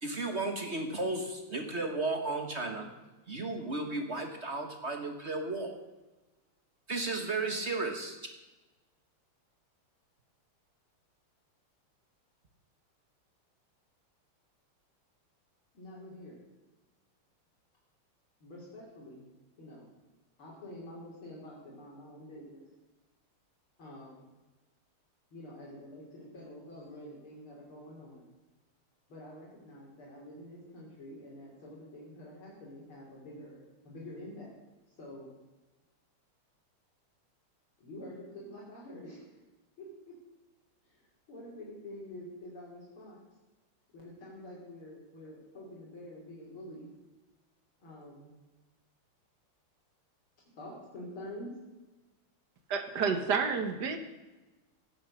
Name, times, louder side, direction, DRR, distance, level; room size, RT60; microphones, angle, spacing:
voice 1, 0.0-2.9 3.3-5.7 6.9-8.2, right 2 dB, 35° right, 5 dB, 1.3 m, -34 dB
voice 2, 15.7-16.4 18.4-19.2 19.6-19.9 20.4-22.6 23.8-24.3 25.3-28.2 29.1-34.6 34.9-35.3 37.8-39.4 39.8-40.2 40.8-43.2 43.9-46.9 47.8-48.3 50.6-51.5 53.1-53.2, left 1 dB, 70° left, -4 dB, 3.9 m, -47 dB
voice 3, 52.7-54.0, right 5 dB, 55° right, 7 dB, 1.7 m, -30 dB
16.5 x 8.1 x 6.4 m, 1.1 s
omnidirectional pair, 2.4 m